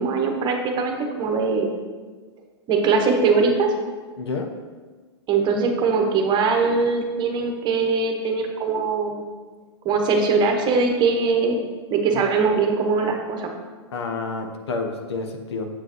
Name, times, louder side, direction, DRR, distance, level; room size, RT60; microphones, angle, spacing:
voice 1, 0.0-1.8 2.7-3.7 5.3-9.2 9.8-13.5, right 4 dB, 30° right, 3 dB, 1.1 m, -21 dB
voice 2, 4.2-4.5 12.1-12.2 13.9-15.7, left 3 dB, 70° left, 4 dB, 1.0 m, -29 dB
7.5 x 6.9 x 3.1 m, 1.4 s
hypercardioid pair, 110°, 14 cm